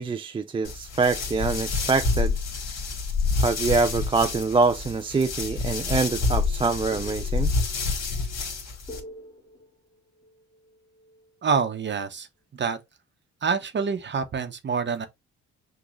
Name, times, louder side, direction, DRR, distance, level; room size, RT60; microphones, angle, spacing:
voice 1, 0.0-2.3 3.4-7.5, right 4 dB, 20° right, 0.3 m, -25 dB
sound 1, 0.6-9.0, left 4 dB, 60° left, 1.9 m, -28 dB
sound 2, 5.8-11.5, equal, 15° left, 1.3 m, -48 dB
voice 2, 11.4-12.3 12.5-12.8 13.4-15.1, right 5 dB, 35° right, 0.9 m, -26 dB
6.3 x 2.3 x 3.1 m
cardioid pair, 90°, 30 cm